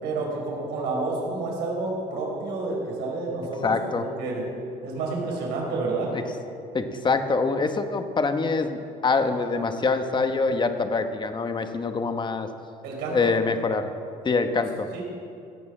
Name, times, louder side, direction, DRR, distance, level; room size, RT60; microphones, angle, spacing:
voice 1, 0.0-4.4 4.8-6.1 12.8-13.3 14.9-15.0, right 3 dB, 90° right, -1 dB, 4.2 m, -29 dB
voice 2, 3.6-4.0 6.7-12.5 13.1-13.9 14.2-14.9, left 4 dB, 25° left, 7 dB, 1.1 m, -25 dB
16.5 x 8.3 x 7.3 m, 2.5 s
cardioid pair, 110°, 17 cm